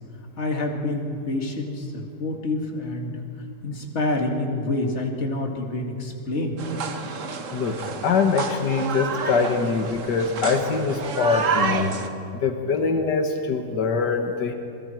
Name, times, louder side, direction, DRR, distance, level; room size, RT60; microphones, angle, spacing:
voice 1, 0.4-3.2 3.6-6.6, left 2 dB, 40° left, 1 dB, 2.4 m, -27 dB
sound 1, 6.6-12.1, right 5 dB, 50° right, 1.4 m, -29 dB
voice 2, 8.0-12.0 12.3-14.5, left 5 dB, 85° left, 4 dB, 1.9 m, -23 dB
27.5 x 22.0 x 4.5 m, 2.7 s
omnidirectional pair, 1.8 m